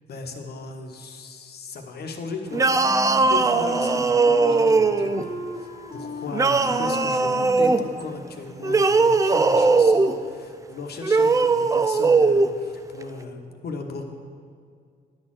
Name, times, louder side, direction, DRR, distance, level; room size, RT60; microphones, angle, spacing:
voice 1, 0.1-14.0, left 4 dB, 55° left, 4 dB, 1.1 m, -37 dB
Wind instrument woodwind instrument, 2.4-8.4, left 2 dB, 30° left, 0.9 m, -36 dB
sound 1, 2.5-5.3 6.3-7.8 8.6-10.1 11.0-12.5, right 3 dB, 15° right, 0.3 m, -19 dB
10.0 x 4.3 x 7.5 m, 2.2 s
cardioid pair, 90°, 20 cm